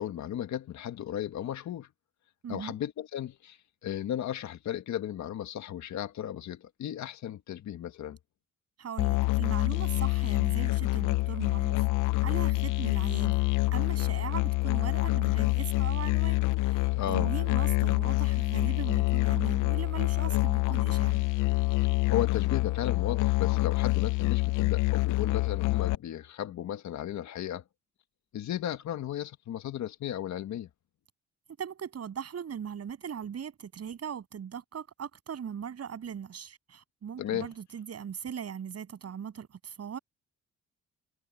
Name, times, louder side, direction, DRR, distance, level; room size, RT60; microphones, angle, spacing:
voice 1, 0.0-1.9 2.5-8.2 16.9-17.3 22.1-27.6 28.3-30.7 37.2-37.5, left 11 dB, 65° left, 1.7 m, -35 dB
voice 2, 2.4-2.8 8.8-11.9 12.2-13.4 13.7-21.2 31.6-40.0, right 8 dB, 55° right, 7.9 m, -39 dB
Musical instrument, 9.0-25.9, left 18 dB, 90° left, 0.7 m, -26 dB
cardioid pair, 90°, 30 cm